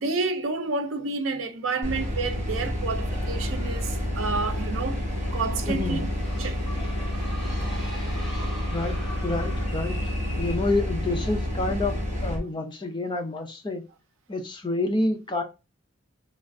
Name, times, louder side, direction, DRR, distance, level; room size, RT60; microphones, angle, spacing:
voice 1, 0.0-5.0 5.3-6.1 6.4-6.7, right 3 dB, 80° right, 0.5 m, -29 dB
sound 1, 1.8-12.4, left 1 dB, 35° right, 1.2 m, -29 dB
sound 2, 3.0-10.6, equal, 5° right, 1.2 m, -43 dB
voice 2, 5.7-6.0 8.7-10.0 10.3-11.9 12.2-13.8 14.3-15.4, left 2 dB, 20° left, 0.4 m, -28 dB
3.1 x 2.4 x 2.5 m
head